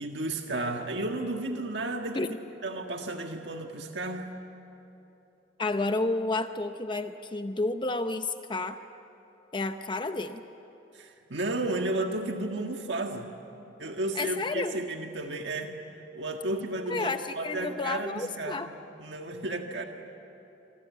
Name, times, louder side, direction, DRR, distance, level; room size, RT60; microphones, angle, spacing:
voice 1, 0.0-2.3 2.6-4.3 10.9-13.3 13.8-15.7 16.1-18.6 19.0-19.9, right 2 dB, 65° right, 3 dB, 1.7 m, -33 dB
voice 2, 5.6-8.8 9.5-10.4 14.2-14.8 16.9-18.7, left 2 dB, 25° left, 8 dB, 0.7 m, -31 dB
26.5 x 25.0 x 8.5 m, 3.0 s
head